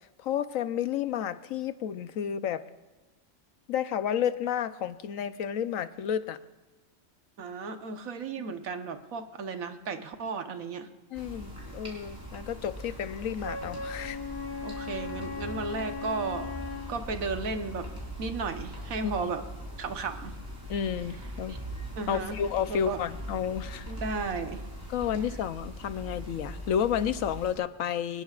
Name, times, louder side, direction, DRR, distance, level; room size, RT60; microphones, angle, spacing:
voice 1, 0.2-2.6 3.7-6.4 11.1-14.2 19.0-19.1 20.7-21.6 22.1-23.9 24.9-28.2, left 9 dB, 75° left, 12 dB, 1.1 m, -31 dB
voice 2, 7.4-10.9 14.6-16.5 16.9-17.9 18.2-19.4 19.8-20.4 21.5-21.6 22.0-22.4 22.7-23.0 23.9-24.6, right 4 dB, 85° right, 7 dB, 1.5 m, -34 dB
sound 1, 11.1-27.5, equal, 15° right, 4.8 m, -41 dB
Wind instrument woodwind instrument, 13.4-16.9, left 5 dB, 50° left, 1.6 m, -38 dB
24.0 x 20.0 x 2.4 m, 1.2 s
omnidirectional pair, 1.4 m